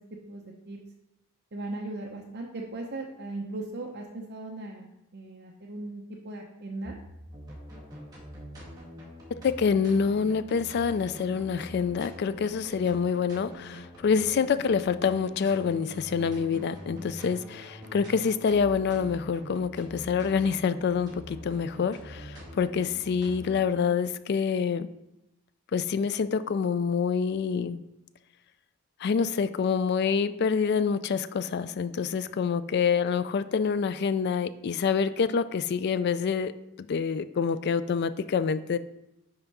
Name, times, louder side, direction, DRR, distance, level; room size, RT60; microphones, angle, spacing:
voice 1, 0.3-0.8 1.5-7.0, right 2 dB, 50° right, -1 dB, 0.7 m, -38 dB
sound 1, 7.3-23.7, equal, 20° right, 1.7 m, -45 dB
voice 2, 9.3-24.9 25.7-27.8 29.0-36.5 36.9-38.8, left 6 dB, 50° left, 14 dB, 0.3 m, -27 dB
5.8 x 4.5 x 5.3 m, 0.91 s
head